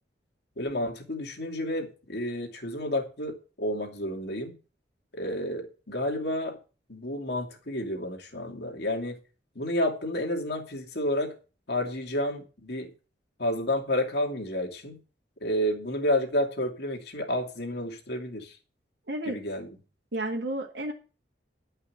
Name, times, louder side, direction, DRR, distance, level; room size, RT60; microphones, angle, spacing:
voice 1, 0.6-4.6 5.1-6.6 6.9-9.2 9.5-11.3 11.7-12.9 13.4-15.0 15.4-18.6 19.3-19.7, left 1 dB, 65° left, 2 dB, 2.6 m, -30 dB
voice 2, 19.1-19.4 20.1-20.9, right 1 dB, 65° right, -1 dB, 2.0 m, -31 dB
11.5 x 5.7 x 8.6 m, 0.34 s
head